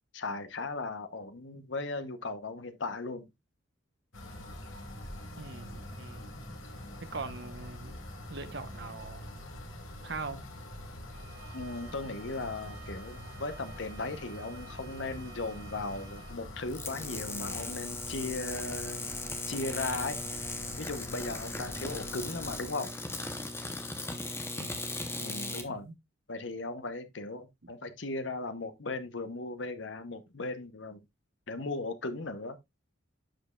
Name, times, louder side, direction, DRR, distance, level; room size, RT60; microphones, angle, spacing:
voice 1, 0.1-3.3 11.5-19.0 19.5-20.5 20.8-22.9 25.2-25.9 26.3-31.0 31.5-32.6, left 3 dB, 65° left, 1.0 m, -37 dB
sound 1, 4.1-22.7, left 1 dB, 85° left, 2.4 m, -45 dB
voice 2, 5.4-6.3 7.0-9.3 10.0-10.5 24.5-24.9 25.7-25.9 27.6-27.7, right 4 dB, 60° right, 1.0 m, -42 dB
Bowed string instrument, 11.1-16.4, right 10 dB, 80° right, 1.8 m, -53 dB
sound 2, 16.7-25.7, left 2 dB, 15° left, 0.9 m, -38 dB
11.5 x 5.3 x 2.4 m
head